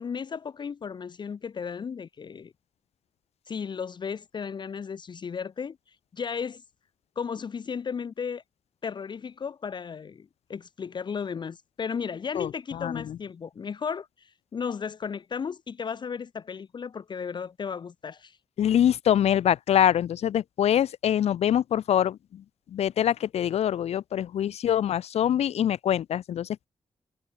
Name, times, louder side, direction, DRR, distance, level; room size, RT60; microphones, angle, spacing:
voice 1, 0.0-2.5 3.5-6.6 7.2-8.4 8.8-18.4, left 6 dB, 45° left, 0.7 m, -35 dB
voice 2, 12.3-13.2 18.6-26.7, left 10 dB, 90° left, 0.4 m, -25 dB
wide cardioid pair, 150°, 10 cm